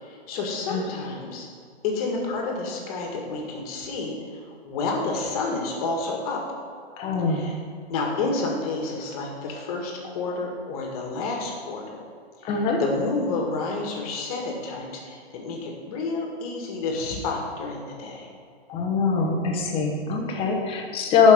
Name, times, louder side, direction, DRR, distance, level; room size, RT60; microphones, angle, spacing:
voice 1, 0.0-1.5 1.8-6.4 7.3-7.6 7.9-12.0 12.4-18.3, left 3 dB, 35° left, 0 dB, 1.7 m, -30 dB
voice 2, 7.0-7.4 12.4-12.8 18.7-21.3, left 5 dB, 15° left, 1 dB, 1.0 m, -22 dB
11.0 x 5.3 x 5.0 m, 2.2 s
hypercardioid pair, 145°, 32 cm